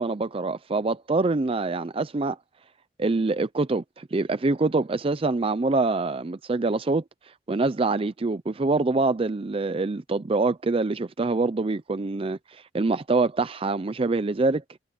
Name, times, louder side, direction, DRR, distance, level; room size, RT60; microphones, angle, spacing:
voice 1, 0.0-2.4 3.0-7.0 7.5-14.6, right 3 dB, 30° right, 0.5 m, -25 dB
head